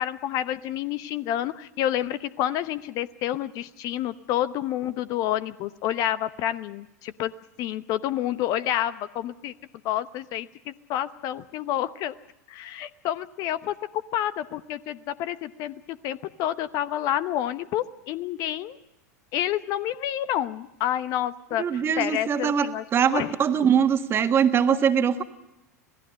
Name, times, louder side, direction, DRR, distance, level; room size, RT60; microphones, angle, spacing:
voice 1, 0.0-7.3 7.6-9.5 9.8-12.1 12.5-13.7 14.1-18.8 19.3-22.8 23.1-23.3, left 12 dB, 45° left, 14 dB, 0.9 m, -29 dB
voice 2, 21.6-25.2, right 7 dB, 25° right, 8 dB, 1.7 m, -22 dB
27.0 x 18.0 x 6.4 m, 0.93 s
figure-of-eight pair, 90°, 9 cm